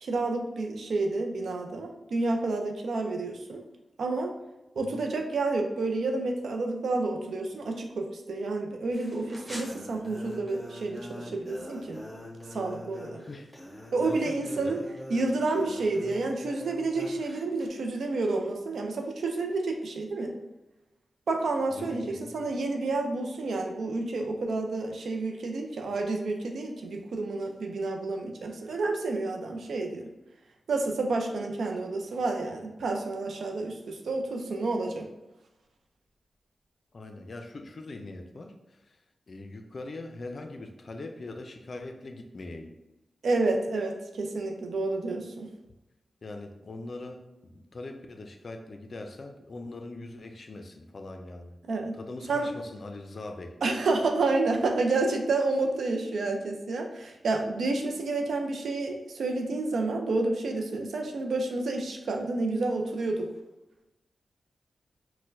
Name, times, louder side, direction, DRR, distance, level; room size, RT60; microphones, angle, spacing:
voice 1, 0.0-3.6 4.0-4.3 4.8-12.0 12.5-13.2 13.9-14.8 15.1-20.3 21.3-30.1 30.7-35.1 43.2-45.5 51.7-51.9 52.3-52.5 53.6-63.3, right 3 dB, 80° right, 2 dB, 0.4 m, -29 dB
sound 1, 8.9-17.7, equal, 20° right, 1.1 m, -43 dB
voice 2, 13.3-14.8 21.7-22.4 36.9-38.5 38.9-39.0 39.3-42.7 46.2-51.5 52.0-53.6, left 2 dB, 60° left, 5 dB, 0.4 m, -41 dB
4.3 x 2.1 x 2.5 m, 1.0 s
cardioid pair, 50°, 0 cm